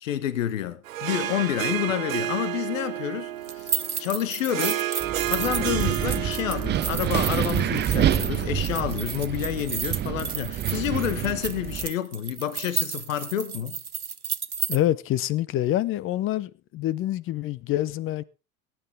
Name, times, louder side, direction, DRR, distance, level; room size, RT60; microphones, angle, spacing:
voice 1, 0.0-3.7 4.0-5.0 5.2-13.8, left 11 dB, 65° left, 1.7 m, -29 dB
Harp, 0.8-9.5, right 13 dB, 65° right, 1.2 m, -32 dB
sound 1, 3.4-14.8, right 6 dB, 90° right, 0.9 m, -32 dB
Wind, 5.0-11.9, right 10 dB, 25° right, 0.9 m, -27 dB
voice 2, 14.7-18.2, left 13 dB, 30° left, 0.8 m, -26 dB
21.5 x 9.7 x 3.6 m
figure-of-eight pair, 85°, 43 cm